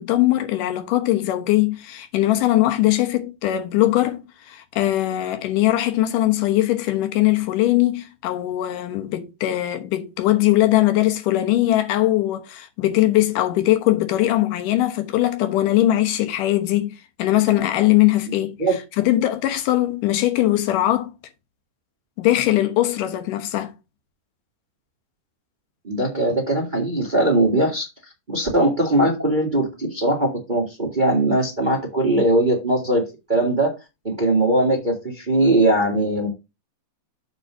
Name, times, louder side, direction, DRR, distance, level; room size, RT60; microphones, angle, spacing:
voice 1, 0.0-18.5 19.0-21.1 22.2-23.7, left 15 dB, 80° left, 2.7 m, -20 dB
voice 2, 25.8-27.8 28.3-33.0 33.3-33.7 34.0-36.3, right 1 dB, 30° right, 0.8 m, -20 dB
7.0 x 3.9 x 5.9 m
omnidirectional pair, 3.7 m